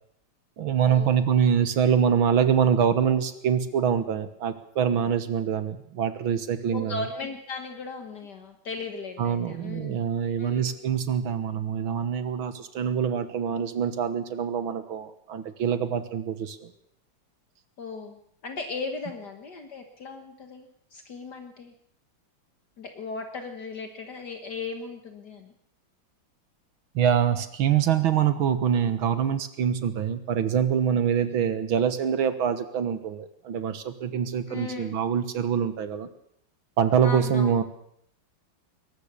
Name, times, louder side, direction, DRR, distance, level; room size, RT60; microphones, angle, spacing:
voice 1, 0.6-7.1 9.2-16.7 27.0-36.1 36.8-37.6, right 8 dB, 85° right, 11 dB, 2.1 m, -25 dB
voice 2, 6.7-10.0 10.4-10.7 17.8-21.7 22.8-25.5 34.5-34.9 37.0-37.6, left 4 dB, 55° left, 6 dB, 1.9 m, -37 dB
21.5 x 19.0 x 6.8 m, 0.70 s
omnidirectional pair, 2.2 m